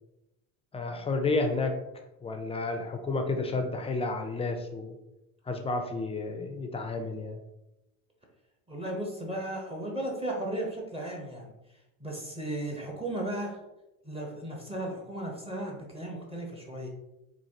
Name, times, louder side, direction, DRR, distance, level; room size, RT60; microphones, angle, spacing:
voice 1, 0.7-1.8 2.2-5.0 5.5-7.4, left 3 dB, 15° left, 4 dB, 0.5 m, -31 dB
voice 2, 8.7-11.5 12.0-13.6 14.0-16.9, right 1 dB, 15° right, -1 dB, 0.8 m, -35 dB
4.0 x 2.5 x 2.8 m, 0.94 s
supercardioid pair, 95°, 40 cm